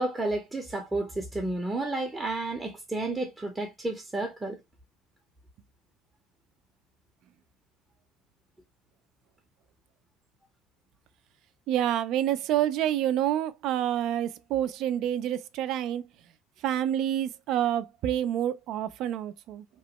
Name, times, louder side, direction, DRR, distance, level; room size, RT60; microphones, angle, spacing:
voice 1, 0.0-4.6, right 2 dB, 15° right, 0.6 m, -31 dB
voice 2, 11.7-16.1 16.6-19.6, right 11 dB, 60° right, 0.3 m, -28 dB
2.9 x 2.1 x 2.8 m
supercardioid pair, 115°, 0 cm